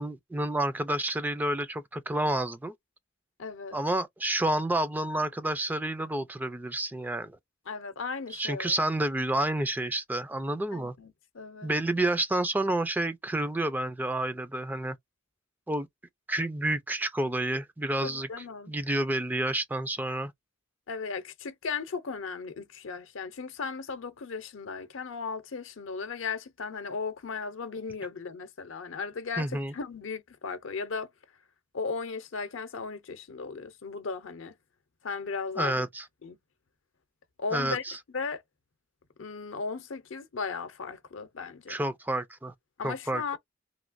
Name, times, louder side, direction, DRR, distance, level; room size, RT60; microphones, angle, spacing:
voice 1, 0.0-2.7 3.7-7.4 8.3-10.9 11.6-15.0 15.7-15.9 16.3-18.3 18.7-20.3 29.4-29.7 35.6-36.0 37.5-38.0 41.7-42.5 42.8-43.2, right 1 dB, 10° right, 0.3 m, -29 dB
voice 2, 3.4-3.8 7.7-8.7 10.7-11.7 18.0-18.7 20.9-31.1 31.7-34.5 35.0-35.8 36.2-36.4 37.4-38.4 39.2-41.8 42.8-43.4, left 5 dB, 80° left, 0.6 m, -36 dB
3.0 x 2.8 x 2.5 m
head